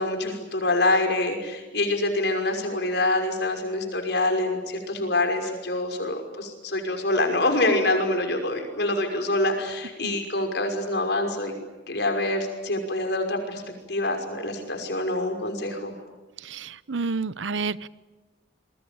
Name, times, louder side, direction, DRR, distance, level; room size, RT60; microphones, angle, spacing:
voice 1, 0.0-11.5 11.9-13.6 13.9-15.9, left 2 dB, 60° left, 5 dB, 5.8 m, -26 dB
voice 2, 16.4-17.9, right 4 dB, 85° right, 18 dB, 0.8 m, -30 dB
29.0 x 23.0 x 8.8 m, 1.3 s
head